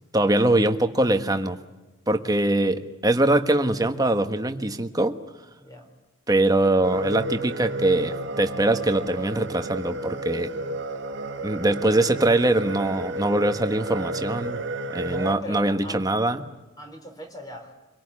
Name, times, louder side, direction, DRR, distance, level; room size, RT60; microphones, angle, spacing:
voice 1, 0.1-1.6 2.1-5.1 6.3-10.5 11.4-14.6 14.9-16.4, right 1 dB, 20° right, 7 dB, 1.3 m, -22 dB
voice 2, 5.6-5.9 15.1-16.0 16.8-17.7, equal, 20° left, 5 dB, 3.9 m, -39 dB
sound 1, 6.8-15.3, right 2 dB, 55° right, 1.5 m, -32 dB
26.0 x 18.0 x 9.8 m, 1.1 s
head